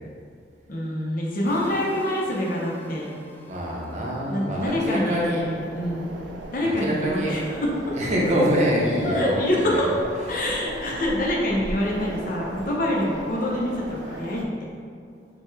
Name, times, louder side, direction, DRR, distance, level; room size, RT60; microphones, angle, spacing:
voice 1, 0.7-3.2 4.3-6.1 6.5-7.7 9.0-9.9 10.3-14.7, left 1 dB, 50° left, -3 dB, 0.7 m, -26 dB
sound 1, 1.5-5.5, left 2 dB, 10° left, 0.3 m, -45 dB
voice 2, 3.4-5.4 6.8-7.4 7.9-9.9, equal, 40° right, -4 dB, 0.7 m, -25 dB
sound 2, 4.5-14.5, right 1 dB, 75° right, 0.5 m, -37 dB
6.2 x 2.3 x 3.2 m, 2.2 s
head